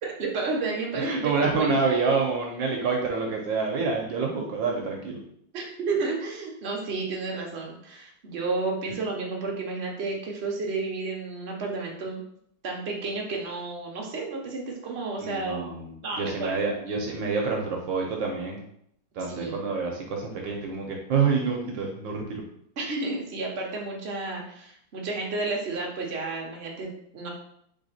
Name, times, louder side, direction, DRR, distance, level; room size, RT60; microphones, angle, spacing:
voice 1, 0.0-1.8 5.5-12.2 12.6-15.6 16.0-16.6 19.3-19.6 22.8-27.3, right 3 dB, 50° right, -1 dB, 0.8 m, -31 dB
voice 2, 0.9-5.2 8.9-9.0 15.2-18.6 19.2-22.4, right 4 dB, 70° right, 0 dB, 1.4 m, -27 dB
3.6 x 3.5 x 4.1 m, 0.70 s
omnidirectional pair, 2.3 m